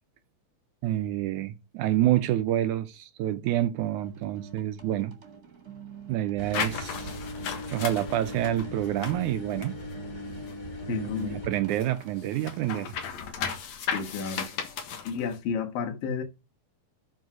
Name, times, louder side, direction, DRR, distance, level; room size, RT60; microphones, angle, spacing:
voice 1, 0.8-5.1 6.1-7.2 7.7-9.8 10.9-12.9, right 13 dB, 75° right, 1.9 m, -28 dB
sound 1, 4.0-12.5, right 6 dB, 35° right, 1.7 m, -50 dB
sound 2, 6.4-11.5, left 1 dB, 25° left, 2.3 m, -39 dB
sound 3, 6.5-10.7 11.1-15.4, left 7 dB, 60° left, 2.5 m, -36 dB
voice 2, 10.9-11.4 13.9-14.5 15.0-16.2, left 6 dB, 90° left, 3.1 m, -31 dB
12.0 x 4.9 x 6.1 m
omnidirectional pair, 3.9 m